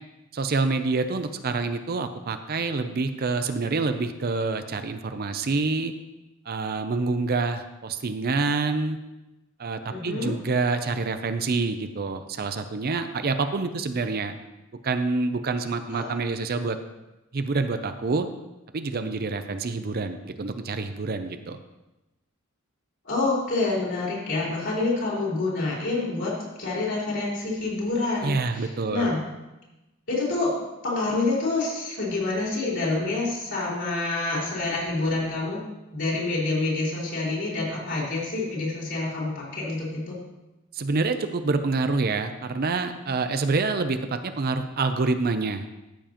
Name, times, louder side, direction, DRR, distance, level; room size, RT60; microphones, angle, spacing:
voice 1, 0.3-5.9 6.5-9.0 9.6-14.3 14.8-16.8 17.3-18.3 18.7-21.6 28.2-29.1 40.7-45.6, right 3 dB, 45° right, 9 dB, 0.5 m, -27 dB
voice 2, 9.9-10.3 15.9-16.1 23.1-29.2 30.1-30.5 30.8-35.6 35.9-40.2, left 3 dB, 55° left, -5 dB, 3.8 m, -27 dB
13.5 x 7.1 x 3.0 m, 1.0 s
head